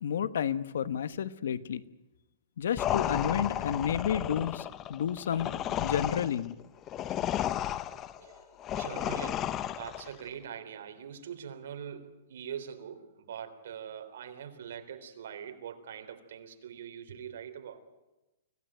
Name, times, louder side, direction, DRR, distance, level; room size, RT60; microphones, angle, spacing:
voice 1, 0.0-1.8 2.6-4.6 4.9-6.5, left 8 dB, 75° left, 14 dB, 1.2 m, -31 dB
sound 1, 2.8-10.2, left 11 dB, 20° left, 0.7 m, -33 dB
voice 2, 7.8-17.8, right 8 dB, 65° right, 6 dB, 3.6 m, -43 dB
25.5 x 16.5 x 9.1 m, 1.0 s
hypercardioid pair, 160°, 0 cm